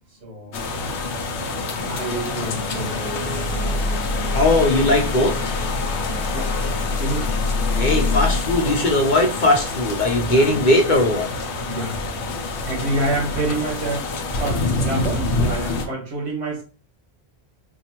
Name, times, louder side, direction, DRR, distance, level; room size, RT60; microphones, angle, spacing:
voice 1, 0.1-0.6 1.9-3.6 6.3-7.4 10.3-10.7 11.6-12.3 12.7-16.6, right 2 dB, 80° right, 1.6 m, -28 dB
sound 1, 0.5-15.9, left 3 dB, 85° left, 1.0 m, -25 dB
sound 2, 2.7-8.4, left 1 dB, 5° left, 0.7 m, -34 dB
voice 2, 4.3-5.6 7.8-11.3, left 1 dB, 50° left, 0.8 m, -19 dB
4.5 x 2.5 x 2.9 m
omnidirectional pair, 1.1 m